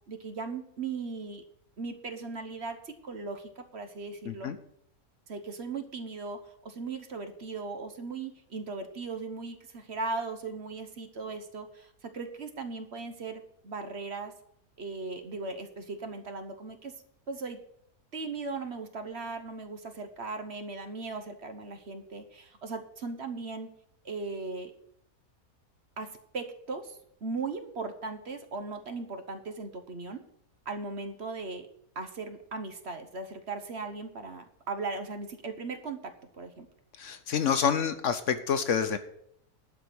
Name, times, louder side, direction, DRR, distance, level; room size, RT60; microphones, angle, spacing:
voice 1, 0.1-1.4 1.8-4.5 5.3-14.3 14.8-16.9 17.3-17.6 18.1-23.7 24.0-24.7 26.0-30.2 30.6-31.7 31.9-36.7, right 4 dB, 50° right, 7 dB, 1.2 m, -38 dB
voice 2, 4.3-4.6 37.0-39.0, left 7 dB, 60° left, 10 dB, 1.0 m, -28 dB
11.5 x 5.0 x 8.0 m, 0.70 s
omnidirectional pair, 1.6 m